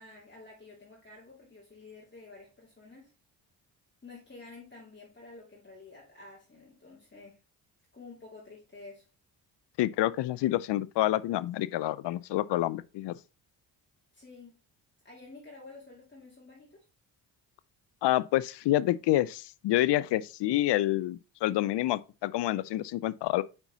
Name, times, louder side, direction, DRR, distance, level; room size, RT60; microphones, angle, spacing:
voice 1, 0.0-3.1 4.0-7.4 7.9-9.1 14.1-14.5 15.0-16.9, left 3 dB, 25° left, 2.3 m, -50 dB
voice 2, 9.8-13.2 18.0-23.4, left 15 dB, 65° left, 0.5 m, -28 dB
5.5 x 4.4 x 3.9 m
supercardioid pair, 55°, 46 cm